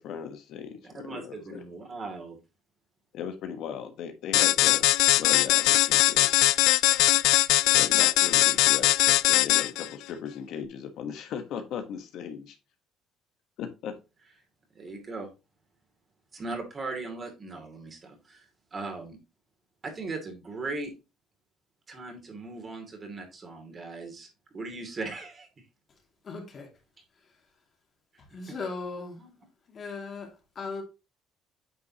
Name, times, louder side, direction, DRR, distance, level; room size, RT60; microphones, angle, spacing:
voice 1, 0.0-1.6 3.1-4.9 5.2-6.4 7.7-12.6 13.6-14.0, left 7 dB, 70° left, 1.2 m, -37 dB
voice 2, 0.9-2.4 14.7-15.3 16.3-18.4 18.7-19.2 19.8-20.9 21.9-24.3 24.5-25.5 29.2-29.3, right 3 dB, 30° right, 2.6 m, -38 dB
sound 1, 4.3-9.9, left 18 dB, 90° left, 0.3 m, -21 dB
voice 3, 26.2-26.7 28.2-29.2 29.7-30.8, left 4 dB, 40° left, 2.4 m, -37 dB
9.0 x 5.5 x 2.9 m
cardioid pair, 115°, 0 cm